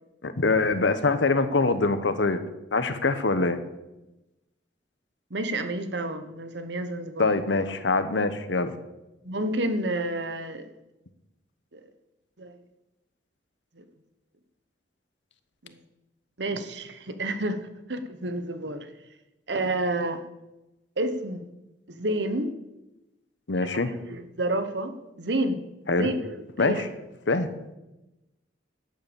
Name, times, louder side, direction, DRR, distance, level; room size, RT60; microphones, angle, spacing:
voice 1, 0.2-2.4 2.7-3.6 7.2-8.7 23.5-23.9 25.9-26.1 26.6-26.9 27.3-27.5, left 3 dB, 85° left, 11 dB, 1.1 m, -24 dB
voice 2, 5.3-7.3 9.2-10.7 11.7-11.8 12.4-12.6 13.8-13.9 15.6-15.8 16.4-17.6 17.9-18.9 19.5-20.2 21.0-21.4 21.9-22.5 24.1-25.6 25.9-26.8, right 1 dB, 70° right, 10 dB, 1.2 m, -29 dB
11.5 x 8.2 x 7.1 m, 0.99 s
head